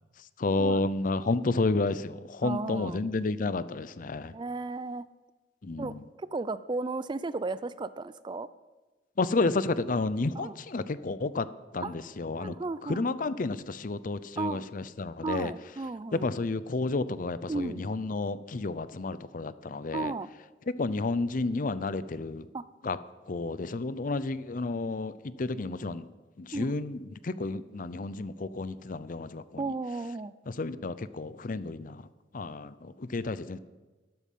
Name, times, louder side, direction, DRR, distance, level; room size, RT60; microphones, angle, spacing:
voice 1, 0.2-4.4 5.6-6.0 9.2-11.5 11.7-12.6 12.8-15.5 16.1-20.1 20.8-22.5 22.8-23.0 23.3-26.1 26.4-29.7 30.5-33.6, left 3 dB, 50° left, 15 dB, 0.6 m, -31 dB
voice 2, 2.4-3.0 4.3-5.1 5.8-8.5 10.4-10.5 11.8-11.9 12.4-13.1 14.4-14.6 15.2-16.3 17.5-17.8 19.9-20.3 22.5-22.6 26.5-26.7 29.6-30.3, right 3 dB, 25° right, 16 dB, 0.4 m, -34 dB
12.5 x 12.5 x 5.5 m, 1.2 s
head